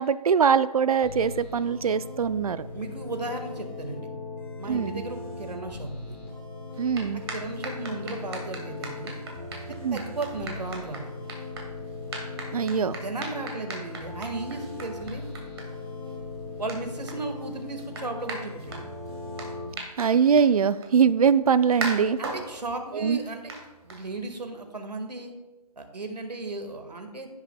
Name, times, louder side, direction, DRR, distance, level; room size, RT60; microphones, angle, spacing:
voice 1, 0.0-2.7 4.7-5.0 6.8-7.2 9.8-10.0 12.5-13.0 20.0-22.2 22.9-23.2, right 6 dB, 65° right, 16 dB, 0.4 m, -22 dB
sound 1, 1.0-19.7, left 3 dB, 10° left, 0.9 m, -39 dB
voice 2, 2.7-4.1 4.6-6.2 7.3-9.2 9.9-11.1 12.9-15.3 16.6-18.8 22.2-23.5 23.8-25.3 25.8-27.3, right 3 dB, 85° right, 6 dB, 1.7 m, -35 dB
sound 2, 6.7-24.5, right 3 dB, 40° right, 2.0 m, -41 dB
15.5 x 6.4 x 2.3 m, 1.1 s
figure-of-eight pair, 155°, 21 cm